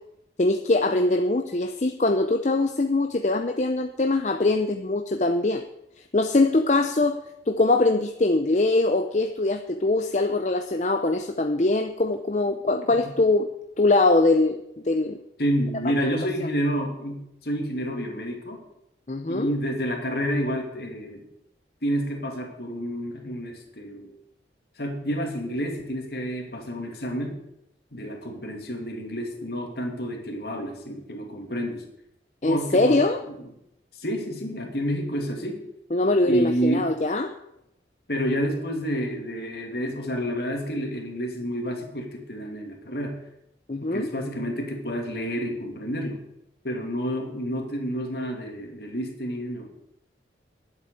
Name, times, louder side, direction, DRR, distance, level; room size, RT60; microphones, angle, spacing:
voice 1, 0.4-5.6 6.1-7.2 7.5-13.5 13.8-14.6 14.8-15.2 19.1-19.5 32.4-33.2 35.9-37.3 43.7-44.1, left 2 dB, 40° left, 6 dB, 0.6 m, -22 dB
voice 2, 15.4-18.6 19.3-21.2 21.8-24.1 24.8-27.3 27.9-31.8 32.5-33.0 33.3-33.4 34.0-35.6 36.2-36.9 38.1-43.2 43.8-46.2 46.6-49.7, equal, 60° left, 2 dB, 2.7 m, -29 dB
11.0 x 8.1 x 8.3 m, 0.81 s
head